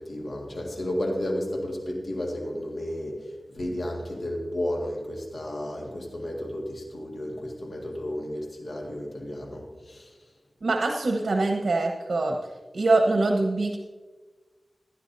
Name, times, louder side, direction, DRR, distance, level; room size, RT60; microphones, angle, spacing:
voice 1, 0.0-10.1, left 1 dB, 60° left, 0 dB, 1.8 m, -32 dB
voice 2, 10.6-12.4 12.7-13.8, right 2 dB, 75° right, 2 dB, 1.0 m, -23 dB
16.0 x 12.0 x 2.7 m, 1.3 s
wide cardioid pair, 70°, 0 cm